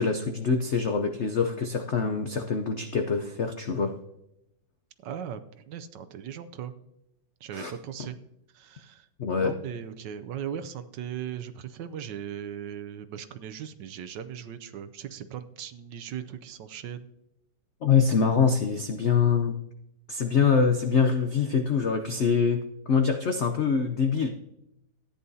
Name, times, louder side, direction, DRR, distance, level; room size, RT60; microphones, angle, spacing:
voice 1, 0.0-3.9 7.5-7.7 9.2-9.5 17.8-19.5 20.1-22.6 22.9-24.3, left 6 dB, 75° left, 5 dB, 0.6 m, -24 dB
voice 2, 5.0-6.7 7.4-8.2 8.5-9.1 9.4-17.1, right 9 dB, 70° right, 10 dB, 1.2 m, -38 dB
14.0 x 10.0 x 2.7 m, 0.82 s
omnidirectional pair, 2.2 m